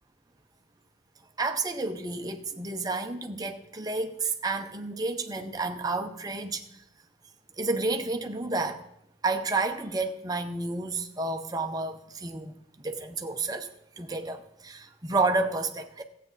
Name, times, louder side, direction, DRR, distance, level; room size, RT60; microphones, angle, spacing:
voice 1, 1.4-6.6 7.6-8.8 9.2-13.7 14.0-16.0, right 3 dB, 20° right, 0.7 m, -30 dB
14.0 x 8.3 x 4.0 m
head